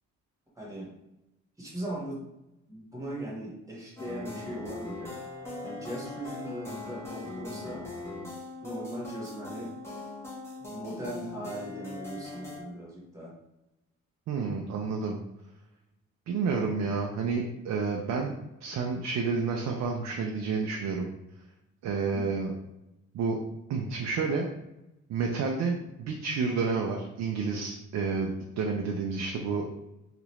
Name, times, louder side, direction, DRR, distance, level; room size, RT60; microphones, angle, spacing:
voice 1, 0.5-0.9 1.6-2.2 2.7-5.1 5.6-7.8 8.6-9.7 10.6-13.3 22.1-22.3, right 1 dB, 10° right, -4 dB, 1.3 m, -39 dB
sound 1, 4.0-12.6, left 2 dB, 10° left, 1.0 m, -40 dB
voice 2, 14.3-15.2 16.3-18.3 18.6-21.1 21.8-22.5 23.1-23.4 23.7-24.5 25.1-29.7, right 4 dB, 65° right, 1 dB, 0.5 m, -30 dB
2.8 x 2.5 x 3.1 m, 0.90 s
cardioid pair, 90°, 30 cm